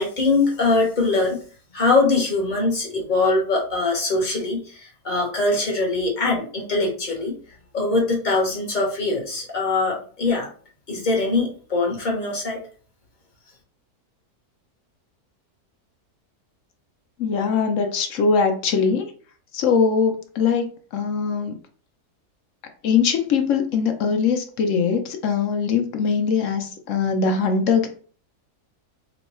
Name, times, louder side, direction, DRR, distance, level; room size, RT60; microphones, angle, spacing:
voice 1, 0.0-1.4 1.7-7.3 7.7-10.5 10.9-12.6, left 3 dB, 35° left, -1 dB, 1.0 m, -22 dB
voice 2, 17.2-19.1 19.5-20.6 20.9-21.5 22.8-27.9, left 5 dB, 70° left, 6 dB, 0.8 m, -21 dB
3.0 x 2.2 x 4.1 m, 0.42 s
omnidirectional pair, 1.6 m